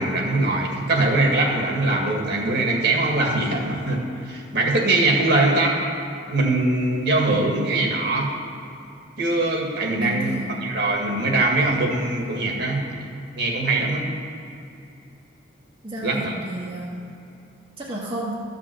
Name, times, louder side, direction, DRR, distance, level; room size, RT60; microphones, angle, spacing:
voice 1, 0.0-5.8 6.3-8.3 9.2-13.1 13.4-14.1 16.0-16.3, right 2 dB, 55° right, 0 dB, 1.9 m, -22 dB
voice 2, 10.0-10.6 15.8-17.0 17.8-18.4, right 1 dB, 25° right, -5 dB, 1.1 m, -31 dB
13.0 x 6.1 x 7.8 m, 2.8 s
head